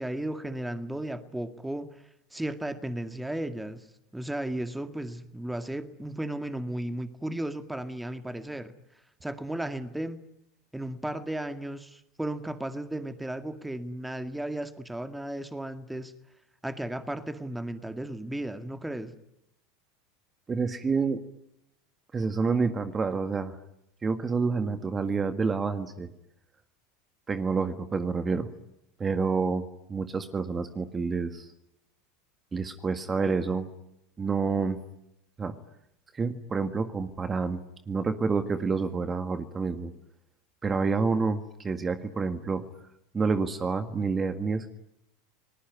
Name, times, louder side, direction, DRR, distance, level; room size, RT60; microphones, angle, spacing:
voice 1, 0.0-2.0 2.3-3.9 4.1-8.7 9.2-10.2 10.7-16.1 16.6-19.1, right 1 dB, 5° right, 9 dB, 2.0 m, -34 dB
voice 2, 20.5-21.2 22.1-23.6 24.0-26.1 27.3-28.5 29.0-29.6 29.9-31.5 32.5-33.7 34.2-34.8 35.4-35.5 36.1-37.6 37.9-39.9 40.6-42.6 43.1-44.7, right 4 dB, 25° right, 9 dB, 1.8 m, -28 dB
30.0 x 20.0 x 9.4 m, 0.83 s
hypercardioid pair, 85°, 0 cm